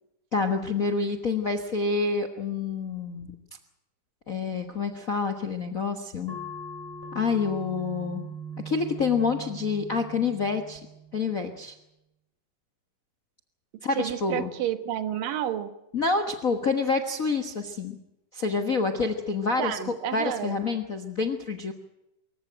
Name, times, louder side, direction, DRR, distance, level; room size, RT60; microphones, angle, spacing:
voice 1, 0.3-3.3 4.3-6.4 7.1-8.3 8.6-10.8 11.1-11.8 13.8-14.5 15.9-18.0 18.3-21.7, left 4 dB, 55° left, 8 dB, 0.9 m, -27 dB
sound 1, 6.3-11.4, right 2 dB, 10° left, 2.5 m, -41 dB
voice 2, 14.0-15.7 19.6-20.6, right 11 dB, 90° right, 11 dB, 3.1 m, -30 dB
24.5 x 15.0 x 9.1 m, 0.89 s
omnidirectional pair, 3.8 m